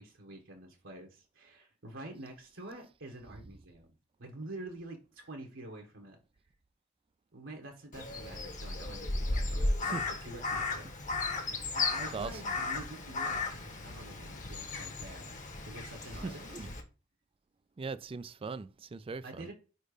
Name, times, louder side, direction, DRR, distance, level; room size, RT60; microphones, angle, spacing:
voice 1, 0.0-6.2 7.3-15.3 15.6-16.6 19.2-19.5, right 2 dB, 75° right, 1.4 m, -47 dB
Crow, 7.9-16.8, left 3 dB, 40° left, 1.4 m, -35 dB
voice 2, 17.8-19.5, right 4 dB, 30° right, 0.4 m, -39 dB
4.9 x 4.4 x 4.9 m
head